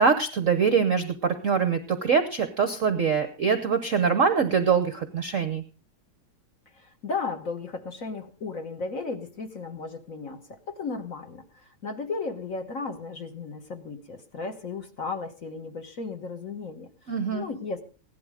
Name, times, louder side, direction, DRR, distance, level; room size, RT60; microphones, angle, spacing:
voice 1, 0.0-5.6 17.1-17.5, right 6 dB, 55° right, 10 dB, 0.9 m, -23 dB
voice 2, 6.7-17.8, left 4 dB, 45° left, 6 dB, 1.5 m, -35 dB
16.5 x 11.5 x 4.9 m, 0.36 s
omnidirectional pair, 2.4 m